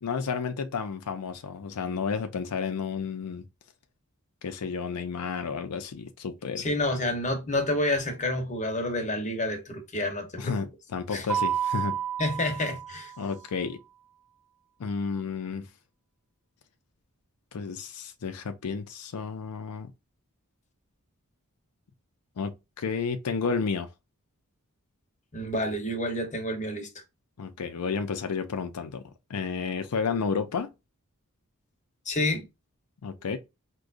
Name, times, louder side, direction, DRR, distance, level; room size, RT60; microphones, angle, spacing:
voice 1, 0.0-3.4 4.4-6.7 10.4-12.0 13.2-13.8 14.8-15.7 17.5-19.9 22.4-23.9 27.4-29.0 29.3-30.7 33.0-33.4, left 5 dB, 90° left, 0.5 m, -31 dB
voice 2, 6.6-10.5 11.1-11.2 12.2-13.1 25.3-26.9 32.1-32.5, left 1 dB, 35° left, 0.9 m, -29 dB
Mallet percussion, 11.3-13.4, right 9 dB, 5° right, 0.6 m, -30 dB
4.8 x 2.2 x 2.5 m
head